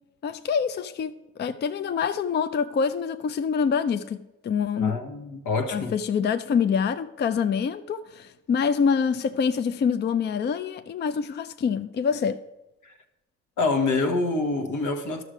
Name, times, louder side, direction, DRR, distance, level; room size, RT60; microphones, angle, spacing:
voice 1, 0.2-1.1 1.4-4.9 5.7-12.4, left 6 dB, 35° left, 0.4 m, -26 dB
voice 2, 4.8-5.9 12.8-12.9 13.6-15.2, left 3 dB, 80° left, 1.3 m, -26 dB
12.0 x 6.5 x 5.0 m
cardioid pair, 90°, 30 cm